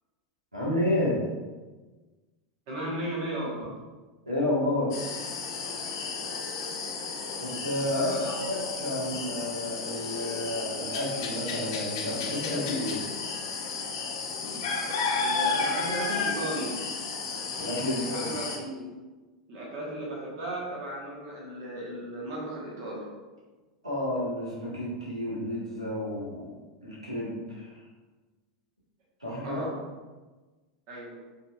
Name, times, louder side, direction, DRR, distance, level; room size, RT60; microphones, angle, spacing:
voice 1, 0.5-1.2 4.2-4.9 7.4-8.1 8.4-13.0 17.6-18.4 23.8-26.5 26.8-27.8 29.2-29.6, left 1 dB, 90° right, -7 dB, 1.5 m, -31 dB
voice 2, 2.7-3.7 7.9-8.4 15.1-16.8 17.8-18.9 19.5-23.0 23.8-23.9 29.4-29.8 30.9-31.1, right 1 dB, 50° right, -4 dB, 1.3 m, -35 dB
sound 1, 4.9-18.6, left 4 dB, 60° left, 0.8 m, -33 dB
5.4 x 3.5 x 2.5 m, 1.3 s
figure-of-eight pair, 85°, 3 cm